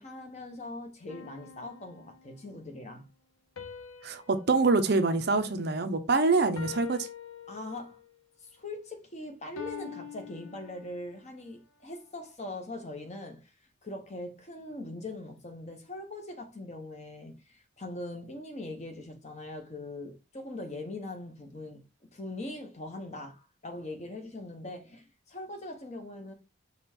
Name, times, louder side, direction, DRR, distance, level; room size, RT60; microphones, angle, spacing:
voice 1, 0.0-3.0 7.5-8.0 8.4-13.4 13.8-21.8 22.1-26.3, left 2 dB, 35° left, 0.9 m, -41 dB
sound 1, 1.1-2.5 3.6-6.0 6.6-8.1 9.6-11.2, left 6 dB, 85° left, 0.7 m, -46 dB
voice 2, 4.0-7.1, right 3 dB, 50° right, 0.5 m, -25 dB
5.2 x 2.3 x 4.3 m
head